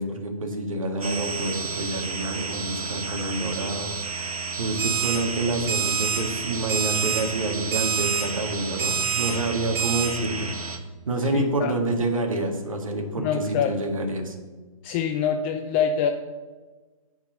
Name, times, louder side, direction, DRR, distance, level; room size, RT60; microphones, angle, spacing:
voice 1, 0.0-3.9 4.6-10.5 11.1-14.4, right 2 dB, 65° right, 3 dB, 1.9 m, -27 dB
sound 1, 1.0-10.8, right 4 dB, 85° right, 1.3 m, -32 dB
Alarm, 4.8-5.2 5.7-6.2 6.7-7.2 7.7-8.2 8.8-9.3 9.8-10.1, right 8 dB, 20° right, 3.1 m, -26 dB
voice 2, 11.2-11.7 13.2-13.8 14.8-16.1, left 7 dB, 20° left, 6 dB, 0.4 m, -25 dB
10.0 x 4.7 x 6.9 m, 1.3 s
figure-of-eight pair, 130°, 18 cm